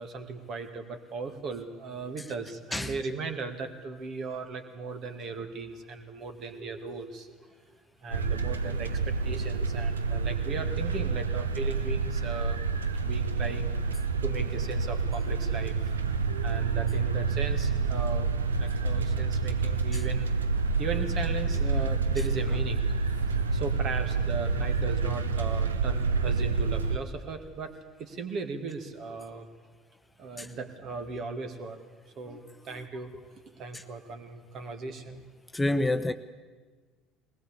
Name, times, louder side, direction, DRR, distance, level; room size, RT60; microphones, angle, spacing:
voice 1, 0.0-7.4 8.0-12.6 13.0-16.0 16.4-18.3 18.6-20.3 20.8-27.7 28.0-29.5 30.2-31.8 32.2-33.2 33.6-35.2, right 4 dB, 45° right, 2.3 m, -37 dB
sound 1, 8.1-27.0, right 4 dB, 80° right, 0.9 m, -28 dB
voice 2, 35.5-36.1, left 2 dB, 10° left, 0.9 m, -27 dB
21.0 x 19.5 x 8.4 m
figure-of-eight pair, 60°, 0 cm